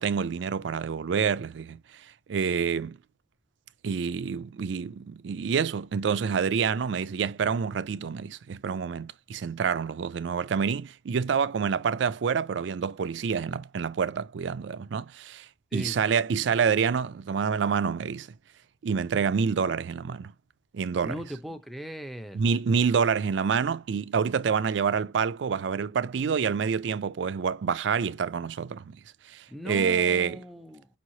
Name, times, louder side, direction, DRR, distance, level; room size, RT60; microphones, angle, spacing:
voice 1, 0.0-1.6 2.3-2.9 3.8-4.9 5.2-15.0 15.7-18.2 18.8-20.2 20.8-21.2 22.3-28.8 29.7-30.4, right 6 dB, 75° right, 0.4 m, -27 dB
voice 2, 21.0-22.5 29.5-30.9, equal, ahead, 0.6 m, -38 dB
5.5 x 3.0 x 2.7 m
head